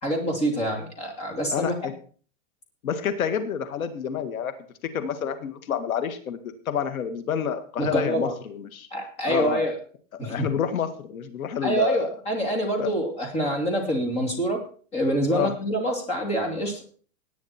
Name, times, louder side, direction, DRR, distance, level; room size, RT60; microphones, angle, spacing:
voice 1, 0.0-1.8 7.8-8.3 8.9-9.7 10.2-10.5 11.6-14.6 14.9-16.8, right 1 dB, 15° left, 2 dB, 2.7 m, -26 dB
voice 2, 1.5-1.9 2.8-4.5 4.9-8.9 9.3-9.6 10.2-12.1 12.8-12.9 15.3-15.5, left 8 dB, 80° left, 10 dB, 2.0 m, -28 dB
17.5 x 9.6 x 4.4 m, 0.43 s
supercardioid pair, 170°, 41 cm